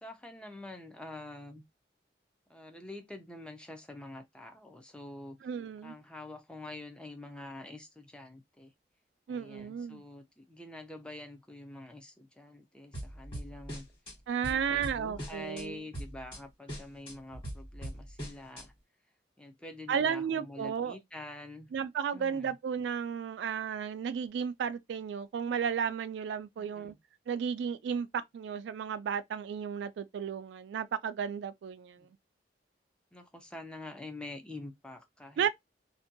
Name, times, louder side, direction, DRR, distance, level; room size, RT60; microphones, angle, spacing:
voice 1, 0.0-1.6 2.5-5.4 5.8-8.7 9.3-13.9 14.4-18.7 19.4-21.7 22.1-22.6 26.6-27.0 32.0-32.1 33.1-35.5, left 2 dB, 5° left, 0.4 m, -46 dB
voice 2, 5.4-6.0 9.3-10.0 14.3-15.8 19.9-21.0 21.7-26.9 27.3-32.1 35.4-35.5, right 7 dB, 80° right, 0.3 m, -33 dB
sound 1, 12.9-14.1 14.4-15.6 15.9-16.4 16.7-18.6, equal, 30° left, 1.3 m, -41 dB
2.5 x 2.2 x 2.5 m
head